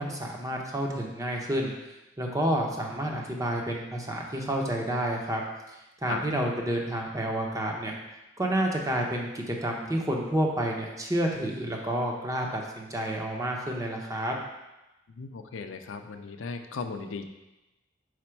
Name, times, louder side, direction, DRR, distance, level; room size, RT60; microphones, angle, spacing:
voice 1, 0.0-1.7 2.2-5.4 6.0-7.9 8.4-14.4, right 1 dB, 20° right, 0 dB, 0.7 m, -29 dB
voice 2, 15.1-17.3, left 5 dB, 85° left, 7 dB, 0.5 m, -36 dB
4.9 x 4.2 x 4.4 m, 1.0 s
head